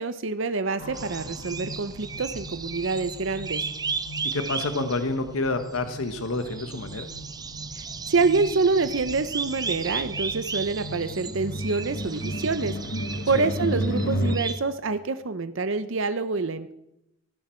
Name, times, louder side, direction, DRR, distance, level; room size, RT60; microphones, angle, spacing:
voice 1, 0.0-3.6 7.7-12.7 13.3-16.7, right 4 dB, 60° right, 11 dB, 0.7 m, -26 dB
sound 1, 0.8-14.4, equal, 55° left, 1.4 m, -35 dB
sound 2, 0.9-14.6, right 5 dB, 20° right, 0.6 m, -36 dB
voice 2, 4.3-7.1 13.3-13.5, left 2 dB, 80° left, 8 dB, 1.1 m, -28 dB
18.5 x 15.0 x 4.4 m, 0.83 s
head